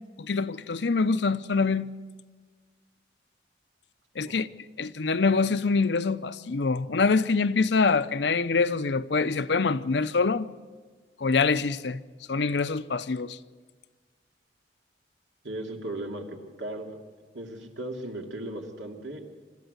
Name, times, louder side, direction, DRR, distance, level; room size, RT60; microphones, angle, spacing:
voice 1, 0.2-1.9 4.2-4.5 4.8-10.5 11.2-12.0 12.3-13.4, left 4 dB, 70° left, 0.6 m, -25 dB
voice 2, 15.4-16.9 17.3-19.2, right 1 dB, 85° right, 2.6 m, -36 dB
25.0 x 13.5 x 7.9 m
head